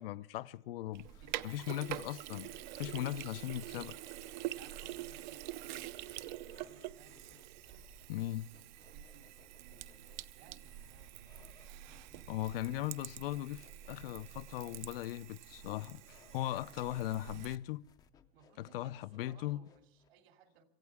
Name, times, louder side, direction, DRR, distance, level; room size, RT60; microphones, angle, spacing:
voice 1, 0.0-1.1 1.4-2.5 2.8-4.0 8.1-8.5 12.3-17.8 18.6-19.7, left 14 dB, 70° left, 0.6 m, -38 dB
sound 1, 0.9-20.1, left 7 dB, 15° left, 0.5 m, -66 dB
Sink (filling or washing), 0.9-17.6, right 14 dB, 50° right, 0.6 m, -46 dB
voice 2, 1.2-2.1 4.4-7.3 8.8-11.5 16.3-17.4 18.3-20.6, right 6 dB, 75° right, 2.8 m, -62 dB
26.0 x 15.5 x 3.6 m
supercardioid pair, 165°, 30 cm